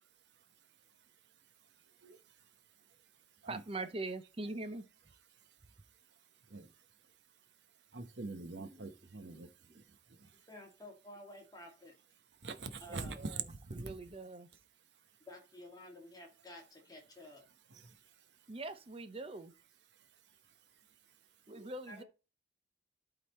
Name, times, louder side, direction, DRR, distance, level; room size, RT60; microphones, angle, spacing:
voice 1, 3.5-4.9 8.6-8.9 12.9-13.4 13.7-14.5 18.5-19.5 21.5-22.0, right 2 dB, 30° right, 0.7 m, -43 dB
voice 2, 7.9-9.5 12.4-14.0 21.5-21.7, right 4 dB, 80° right, 1.0 m, -43 dB
voice 3, 10.5-11.9 12.8-13.2 15.3-17.4 21.9-22.0, left 1 dB, 20° left, 2.0 m, -52 dB
11.5 x 4.0 x 4.2 m
head